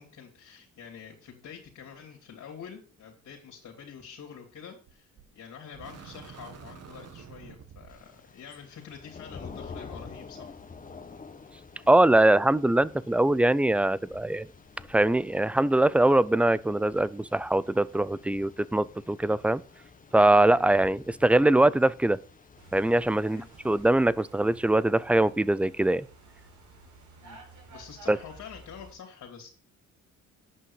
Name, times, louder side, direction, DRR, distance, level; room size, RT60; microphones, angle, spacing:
voice 1, 0.0-10.6 20.4-20.6 23.3-23.5 27.2-27.4 27.7-29.5, left 7 dB, 70° left, 3.0 m, -46 dB
sound 1, 4.9-5.3 5.7-8.1, right 6 dB, 55° right, 1.8 m, -47 dB
Thunder / Rain, 7.9-23.9, left 5 dB, 25° left, 1.3 m, -49 dB
voice 2, 11.9-14.5 14.9-19.6 20.1-22.2 22.7-26.0 28.1-28.2, right 1 dB, 5° right, 0.4 m, -22 dB
sound 2, 22.6-28.9, right 3 dB, 80° right, 3.8 m, -52 dB
8.6 x 5.7 x 7.2 m
cardioid pair, 90°, 30 cm